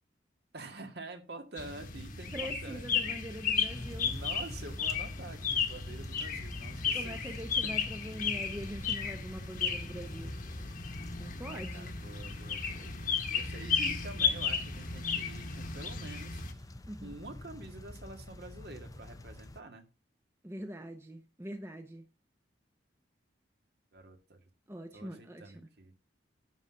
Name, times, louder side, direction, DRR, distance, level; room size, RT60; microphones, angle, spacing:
voice 1, 0.5-7.3 7.6-7.7 11.5-16.7 17.0-19.9 23.9-24.4 24.9-25.9, right 2 dB, 60° right, 2.0 m, -48 dB
sound 1, 1.6-16.5, left 6 dB, 45° left, 1.4 m, -34 dB
voice 2, 2.3-4.1 6.9-10.3 11.2-11.9 16.9-17.1 20.4-22.0 24.7-25.5, equal, 15° right, 1.0 m, -43 dB
sound 2, 3.7-19.6, left 1 dB, 20° left, 0.6 m, -46 dB
10.5 x 4.2 x 7.7 m
head